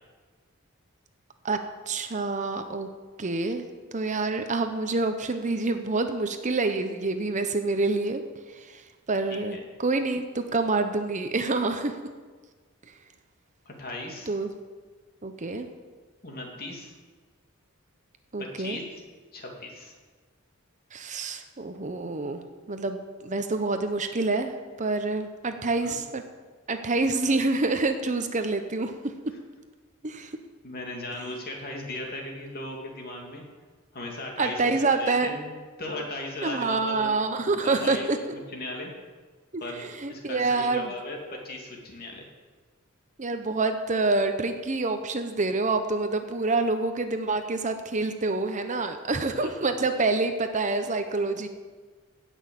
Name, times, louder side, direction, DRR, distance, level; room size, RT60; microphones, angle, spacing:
voice 1, 1.9-2.9 3.2-3.6 3.9-8.2 8.5-8.8 9.1-11.9 14.3-14.5 15.2-15.7 18.3-18.8 20.9-22.4 22.7-24.5 24.8-26.2 26.7-29.3 30.0-30.3 34.4-35.4 36.4-38.2 39.5-39.6 40.0-40.9 43.2-51.5, right 3 dB, 35° right, 7 dB, 0.8 m, -27 dB
voice 2, 9.3-9.6 13.6-14.3 16.2-16.9 18.4-19.0 19.3-19.9 25.6-26.0 30.6-33.4 33.9-37.1 37.6-38.1 38.3-38.9 39.6-42.2 49.4-49.5, left 1 dB, 45° left, 0 dB, 2.6 m, -37 dB
16.5 x 6.3 x 7.2 m, 1.4 s
head